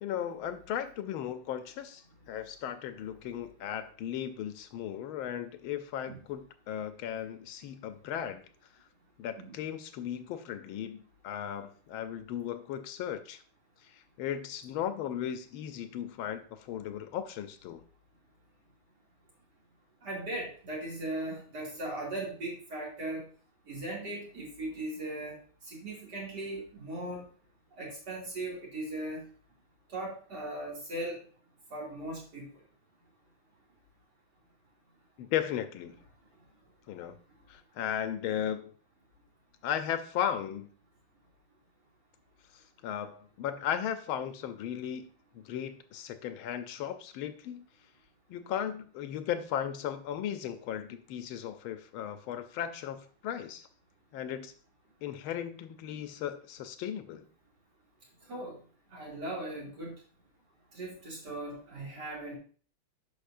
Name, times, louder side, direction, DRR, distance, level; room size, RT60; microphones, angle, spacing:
voice 1, 0.0-8.4 9.2-13.4 14.2-17.8 35.2-36.0 36.9-37.2 37.5-38.7 39.6-40.7 42.8-45.1 45.3-47.6 48.3-53.7 54.1-54.5 55.0-57.2, left 10 dB, 85° left, 9 dB, 1.5 m, -36 dB
voice 2, 20.0-23.3 23.6-27.3 27.7-29.3 29.9-31.2 31.7-32.6 36.4-36.5 58.2-58.6 58.9-60.0 60.7-62.4, right 1 dB, 55° right, -4 dB, 3.2 m, -38 dB
10.5 x 5.4 x 2.5 m, 0.41 s
omnidirectional pair, 2.2 m